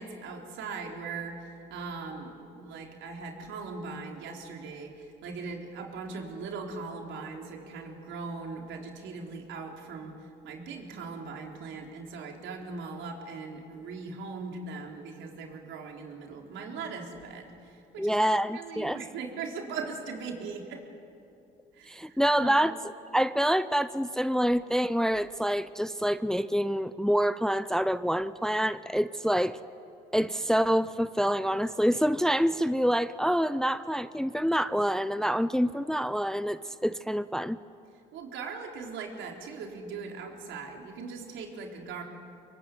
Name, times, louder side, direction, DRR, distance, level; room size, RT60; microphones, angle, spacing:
voice 1, 0.0-20.8 21.7-22.6 38.1-42.0, right 4 dB, 70° right, 1 dB, 4.1 m, -40 dB
voice 2, 18.0-19.0 21.9-22.7 23.1-29.6 30.1-37.6, equal, 5° left, 14 dB, 0.7 m, -26 dB
24.5 x 22.5 x 9.4 m, 2.6 s
hypercardioid pair, 65°, 20 cm